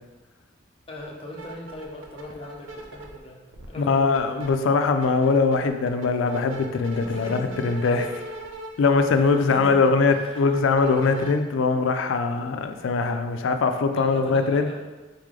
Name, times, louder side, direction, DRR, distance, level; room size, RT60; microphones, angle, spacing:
voice 1, 0.9-3.4 3.7-4.4 6.9-8.0 9.2-10.5 13.9-14.8, left 1 dB, 30° left, -2 dB, 0.5 m, -40 dB
sound 1, 1.0-1.1 1.3-3.2 3.5-4.5 4.9-11.3, right 1 dB, 75° right, 0.5 m, -39 dB
voice 2, 3.8-8.2 8.8-14.7, left 4 dB, 80° left, 7 dB, 0.4 m, -22 dB
4.0 x 3.2 x 3.7 m, 1.2 s
head